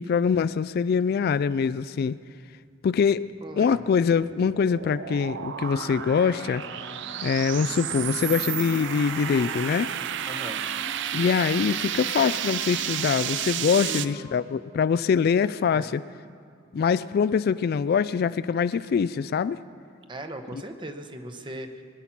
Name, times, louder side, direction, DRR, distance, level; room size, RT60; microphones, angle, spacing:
voice 1, 0.0-2.2 2.8-3.3 3.6-6.6 7.2-9.9 11.1-16.0 16.7-19.6 20.5-20.6, left 6 dB, 55° left, 15 dB, 0.3 m, -24 dB
voice 2, 3.4-3.9 10.3-10.6 13.8-14.3 15.7-15.9 20.1-21.8, right 1 dB, 25° right, 6 dB, 1.0 m, -38 dB
sound 1, 3.5-14.1, right 11 dB, 65° right, 0.4 m, -32 dB
sound 2, 5.6-14.4, left 2 dB, 25° left, 1.1 m, -43 dB
21.5 x 9.8 x 5.9 m, 2.2 s
head